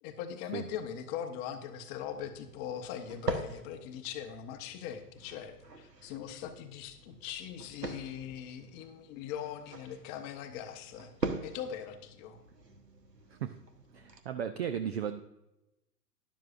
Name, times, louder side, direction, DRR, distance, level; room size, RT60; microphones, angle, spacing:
voice 1, 0.0-11.1 11.4-12.4, left 9 dB, 20° left, 7 dB, 0.8 m, -41 dB
sound 1, 1.8-14.2, right 3 dB, 85° right, 1.2 m, -43 dB
voice 2, 13.9-15.2, right 8 dB, 40° right, 10 dB, 0.5 m, -35 dB
12.0 x 11.0 x 2.5 m, 0.93 s
figure-of-eight pair, 115°, 48 cm